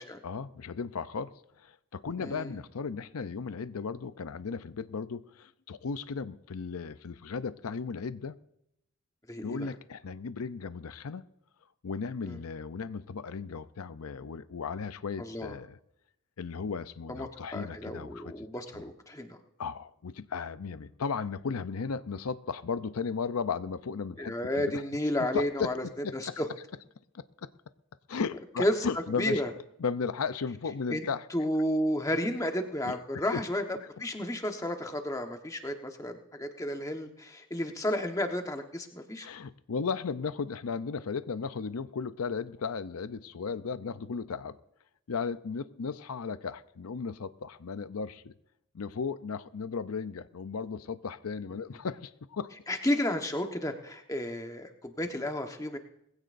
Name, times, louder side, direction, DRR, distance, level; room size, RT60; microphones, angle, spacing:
voice 1, 0.2-8.4 9.4-11.3 11.8-15.8 16.4-18.5 18.7-18.8 19.6-24.8 25.2-26.3 27.1-27.5 28.1-29.5 29.8-31.3 32.8-33.4 39.2-44.6 45.1-48.3 48.7-52.5, left 5 dB, 85° left, 0.6 m, -35 dB
voice 2, 2.2-2.5 9.3-9.7 12.2-12.4 15.2-15.6 17.1-19.4 24.2-25.8 26.1-26.5 28.6-28.8 29.2-29.5 30.9-31.1 31.3-39.3 52.7-55.8, left 1 dB, 15° left, 1.1 m, -32 dB
20.5 x 16.0 x 2.6 m
head